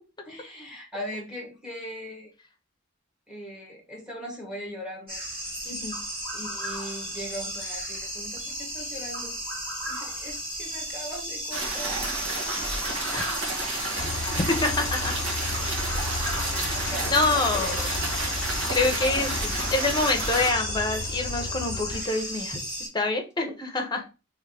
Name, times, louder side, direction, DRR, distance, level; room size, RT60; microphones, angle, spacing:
voice 1, 0.2-2.3 3.3-5.2 6.3-9.3 9.9-12.1 16.9-17.7 19.0-19.4 24.0-24.1, equal, 5° right, 0 dB, 1.2 m, -39 dB
sound 1, 5.1-22.9, equal, 50° right, 2.5 m, -34 dB
voice 2, 5.7-6.0 13.1-13.3 14.3-15.1 16.7-16.8 17.1-17.8 18.7-22.6 22.9-24.0, left 3 dB, 20° left, 3 dB, 0.8 m, -26 dB
sound 2, 11.5-20.5, right 2 dB, 75° right, 1.4 m, -31 dB
sound 3, 14.0-22.0, left 3 dB, 55° left, 0.6 m, -34 dB
3.6 x 3.0 x 3.4 m, 0.29 s
head